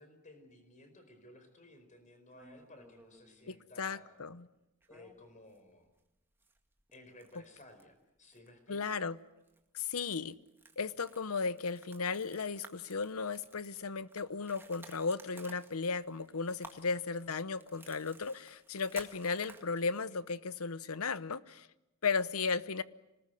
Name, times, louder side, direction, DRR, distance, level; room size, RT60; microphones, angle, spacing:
voice 1, 0.0-4.2 4.9-5.9 6.9-9.0 22.3-22.5, left 2 dB, 35° left, 8 dB, 4.7 m, -57 dB
sound 1, 2.3-3.7 4.8-5.6 5.9-6.0 6.4-7.9 8.3-8.5 8.8-9.1 9.5-9.6 10.0-20.0, right 2 dB, 10° right, 2.0 m, -56 dB
voice 2, 3.5-4.5 8.7-9.2 9.7-10.3 10.8-21.7 22.0-22.8, left 4 dB, 80° left, 16 dB, 0.9 m, -35 dB
26.5 x 20.0 x 9.3 m, 0.97 s
head